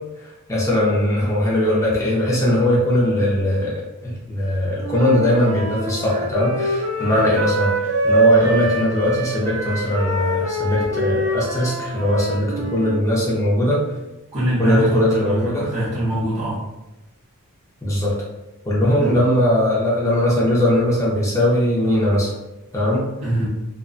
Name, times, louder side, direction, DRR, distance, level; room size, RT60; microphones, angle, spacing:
voice 1, 0.5-3.7 4.0-13.8 14.6-15.7 17.8-18.1 18.6-22.3 22.7-23.1, left 1 dB, 15° left, -6 dB, 0.6 m, -20 dB
Wind instrument woodwind instrument, 4.8-12.9, right 2 dB, 70° right, 0.4 m, -23 dB
voice 2, 14.3-16.6 18.9-19.2 23.2-23.5, right 1 dB, 30° right, -11 dB, 0.7 m, -23 dB
2.5 x 2.1 x 2.4 m, 1.0 s
head